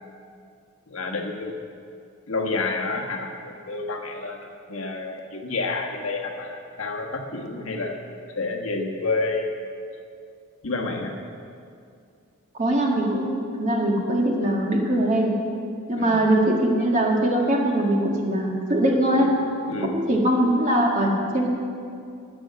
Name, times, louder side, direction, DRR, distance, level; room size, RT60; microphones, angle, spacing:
voice 1, 0.9-1.5 2.3-9.4 10.6-11.1 15.9-16.2 19.1-19.3 19.7-20.1, left 3 dB, 65° left, 2 dB, 1.4 m, -29 dB
voice 2, 12.6-15.3 15.9-19.3 19.8-21.5, right 1 dB, 35° right, -1 dB, 1.9 m, -22 dB
12.5 x 9.2 x 7.7 m, 2.4 s
head